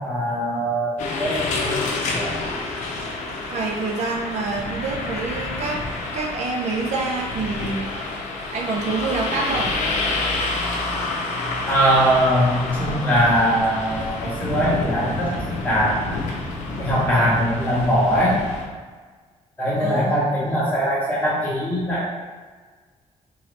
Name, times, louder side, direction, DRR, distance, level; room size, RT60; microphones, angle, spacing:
voice 1, 0.0-2.4 11.7-15.3 15.6-16.0 16.8-18.4 19.6-22.1, equal, 15° left, -8 dB, 1.2 m, -21 dB
sound 1, 1.0-18.6, left 3 dB, 75° left, 0.6 m, -28 dB
voice 2, 3.5-5.8 6.1-8.3 8.5-9.8 19.8-20.1, right 3 dB, 65° right, 1 dB, 0.5 m, -27 dB
3.8 x 2.8 x 3.1 m, 1.5 s
cardioid pair, 175°, 12 cm